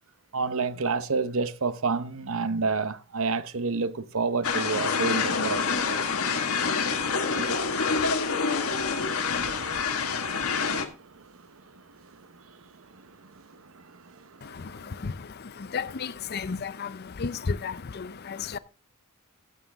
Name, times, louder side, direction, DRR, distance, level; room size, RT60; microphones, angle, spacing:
voice 1, 0.3-5.7 7.4-7.6 10.1-14.8, right 4 dB, 65° right, 0.8 m, -31 dB
sound 1, 4.4-10.8, left 5 dB, 85° left, 1.6 m, -27 dB
voice 2, 14.4-18.6, left 5 dB, 45° left, 0.5 m, -34 dB
14.5 x 7.5 x 3.5 m
head